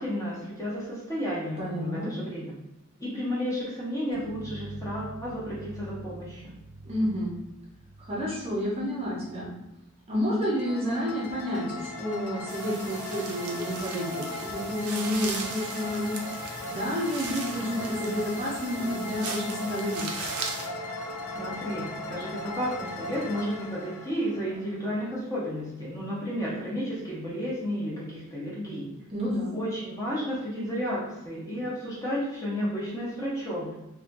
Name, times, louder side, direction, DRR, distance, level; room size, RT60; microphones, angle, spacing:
voice 1, 0.0-2.5 3.0-6.5 21.3-28.9 29.5-33.8, equal, 15° left, -7 dB, 0.8 m, -32 dB
voice 2, 1.6-2.1 6.8-7.3 8.0-9.5 10.1-16.2 16.7-20.1 29.1-29.5, equal, 30° right, -5 dB, 0.6 m, -30 dB
sound 1, 4.1-9.6, right 2 dB, 55° left, 1.4 m, -45 dB
sound 2, 10.4-25.2, left 2 dB, 85° left, 0.4 m, -38 dB
sound 3, 12.5-20.7, right 4 dB, 85° right, 0.5 m, -38 dB
2.6 x 2.2 x 2.6 m, 0.93 s
head